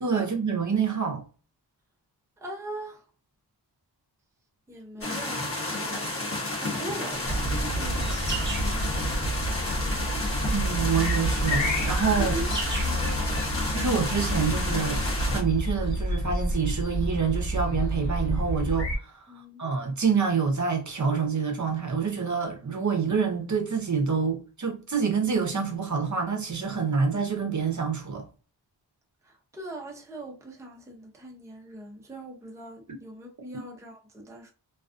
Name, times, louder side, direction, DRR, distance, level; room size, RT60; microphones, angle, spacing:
voice 1, 0.0-1.2 10.5-12.4 13.7-28.3 32.9-33.0 33.5-33.6, right 6 dB, 40° right, 0.7 m, -27 dB
voice 2, 2.4-3.0 4.7-10.0 12.2-12.5 12.8-13.2 19.3-19.6 29.2-34.5, right 1 dB, 5° right, 0.6 m, -41 dB
sound 1, 5.0-15.4, left 2 dB, 30° left, 0.9 m, -31 dB
sound 2, 7.2-19.0, right 1 dB, 85° left, 0.8 m, -29 dB
sound 3, 7.8-15.9, right 3 dB, 25° right, 1.0 m, -42 dB
2.4 x 2.3 x 2.4 m
wide cardioid pair, 85°, 43 cm